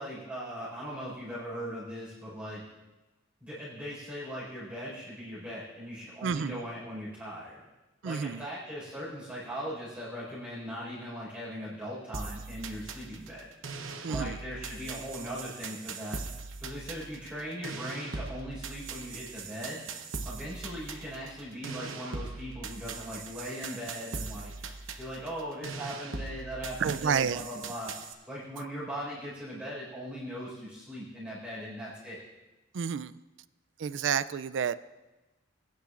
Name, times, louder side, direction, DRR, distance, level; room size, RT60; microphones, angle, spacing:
voice 1, 0.0-2.6 3.4-7.6 8.0-13.5 14.1-16.2 16.6-19.8 20.2-24.5 25.0-27.9 28.3-32.2, equal, 5° right, -8 dB, 4.7 m, -39 dB
voice 2, 6.2-6.6 8.0-8.4 14.0-14.4 26.8-27.4 32.7-33.2 33.8-34.7, right 7 dB, 65° right, 15 dB, 0.4 m, -30 dB
sound 1, 12.1-28.1, right 4 dB, 85° right, 1.0 m, -41 dB
21.5 x 10.5 x 2.5 m, 1.1 s
head